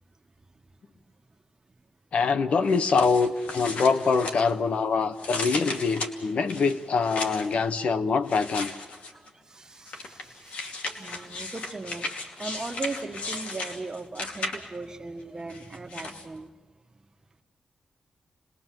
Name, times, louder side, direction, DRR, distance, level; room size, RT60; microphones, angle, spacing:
voice 1, 2.1-8.7, left 5 dB, 70° left, 11 dB, 1.1 m, -24 dB
sound 1, 2.7-4.8 5.2-7.5 8.3-9.3 9.9-14.9 15.5-16.3, left 3 dB, 85° left, 2.7 m, -36 dB
voice 2, 9.1-12.1 12.4-16.5, right 3 dB, 30° right, 6 dB, 1.6 m, -38 dB
30.0 x 21.0 x 7.7 m, 1.3 s
wide cardioid pair, 100°, 2 cm